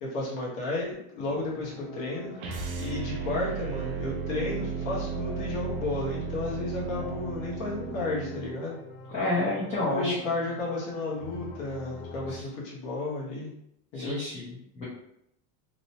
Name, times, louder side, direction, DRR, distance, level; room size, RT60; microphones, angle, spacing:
voice 1, 0.0-2.4 2.8-8.8 9.8-13.5 13.9-14.2, left 2 dB, 50° left, -4 dB, 1.0 m, -32 dB
sound 1, 1.2-12.4, left 3 dB, 80° left, 0.7 m, -46 dB
sound 2, 2.4-8.6, right 6 dB, 55° right, 0.6 m, -35 dB
voice 2, 9.1-10.2 12.3-12.4 13.9-14.8, left 2 dB, 15° left, -10 dB, 0.6 m, -30 dB
3.0 x 2.0 x 2.7 m, 0.79 s
supercardioid pair, 155°, 42 cm